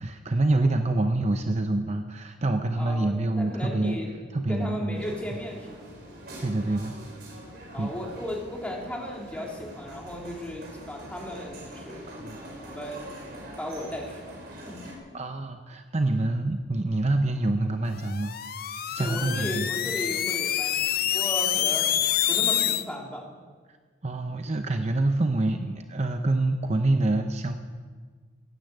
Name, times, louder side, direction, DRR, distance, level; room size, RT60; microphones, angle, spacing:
voice 1, 0.0-4.0 4.3-5.1 6.4-6.9 7.8-7.9 12.1-12.4 15.1-18.4 18.8-19.7 24.0-27.6, right 2 dB, 35° right, 6 dB, 0.7 m, -26 dB
voice 2, 2.8-4.1 4.5-5.9 7.7-12.1 12.6-14.2 14.7-15.2 19.0-21.9 22.3-23.3, left 1 dB, 5° left, -2 dB, 2.9 m, -36 dB
sound 1, 4.9-14.9, equal, 55° right, 4.6 m, -44 dB
sound 2, 18.0-22.8, left 11 dB, 55° left, 0.6 m, -26 dB
16.0 x 10.0 x 8.1 m, 1.5 s
head